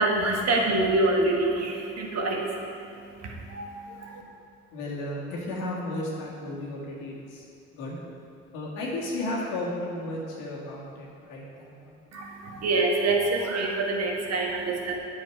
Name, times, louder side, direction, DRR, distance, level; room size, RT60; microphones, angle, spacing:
voice 1, 0.0-4.2 12.1-15.0, right 2 dB, 55° right, 0 dB, 1.5 m, -26 dB
voice 2, 4.7-7.5 7.7-8.0 8.5-11.9, left 1 dB, 80° left, -4 dB, 1.9 m, -34 dB
9.2 x 5.6 x 4.7 m, 2.5 s
supercardioid pair, 65°, 31 cm